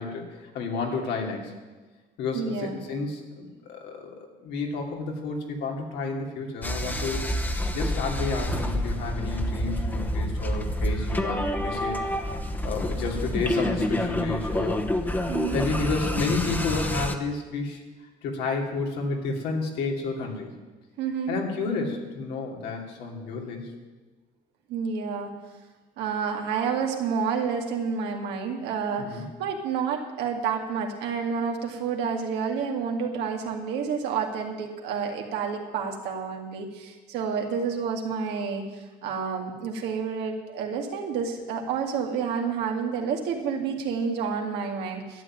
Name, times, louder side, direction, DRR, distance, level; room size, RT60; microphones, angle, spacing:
voice 1, 0.0-1.5 2.2-4.2 4.4-12.0 12.6-14.9 15.5-17.8 18.2-20.5 21.3-23.7 29.0-29.3, left 4 dB, 85° left, 1 dB, 2.7 m, -31 dB
voice 2, 2.3-2.8 15.3-15.6 21.0-21.4 24.7-25.3 26.0-45.2, right 6 dB, 90° right, 2 dB, 2.1 m, -29 dB
sound 1, 6.6-17.1, equal, 10° left, 1.0 m, -28 dB
12.5 x 7.5 x 9.8 m, 1.3 s
cardioid pair, 110°, 17 cm